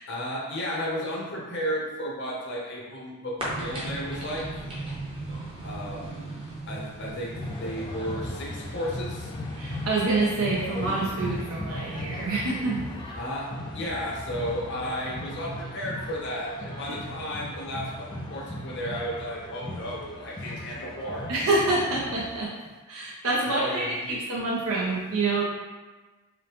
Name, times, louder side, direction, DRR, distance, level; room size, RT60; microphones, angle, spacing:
voice 1, 0.1-4.4 5.6-6.4 6.7-7.3 7.6-9.3 13.2-21.3 23.4-24.2, equal, 55° left, -5 dB, 0.8 m, -33 dB
sound 1, 3.4-11.4, right 2 dB, 25° right, 0.8 m, -38 dB
sound 2, 7.3-22.5, left 1 dB, 20° left, 0.3 m, -37 dB
voice 2, 9.5-12.8 21.3-22.5 22.9-25.4, right 2 dB, 70° right, -4 dB, 0.6 m, -27 dB
5.0 x 2.1 x 3.0 m, 1.2 s
head